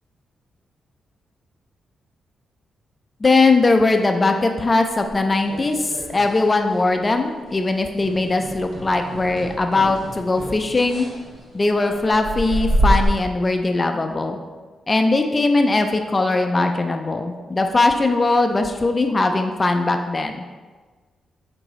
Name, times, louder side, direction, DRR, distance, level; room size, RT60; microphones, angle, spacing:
voice 1, 3.2-11.1 11.5-14.4 14.9-20.4, left 3 dB, 35° left, 6 dB, 0.3 m, -20 dB
sound 1, 5.0-6.5 6.7-7.1 7.4-7.6 8.0-13.1, right 1 dB, 85° right, 0.9 m, -27 dB
4.7 x 2.6 x 3.0 m, 1.4 s
cardioid pair, 60°, 0 cm